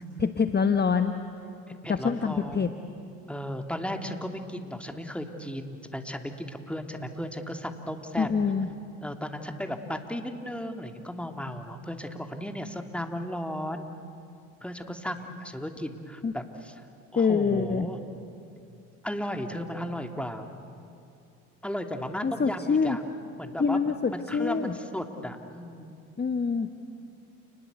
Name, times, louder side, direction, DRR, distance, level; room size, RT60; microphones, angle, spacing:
voice 1, 0.2-1.1 1.9-2.7 8.2-8.7 16.2-16.3 17.2-17.9 22.2-23.0 23.6-24.8 26.2-26.7, left 5 dB, 25° left, 8 dB, 1.2 m, -25 dB
voice 2, 1.8-2.7 3.3-8.3 9.0-13.9 14.6-16.8 17.1-18.0 19.0-20.5 21.6-23.0 23.4-26.0, equal, 5° left, 5 dB, 2.7 m, -35 dB
29.5 x 20.5 x 8.3 m, 2.6 s
hypercardioid pair, 60°, 42 cm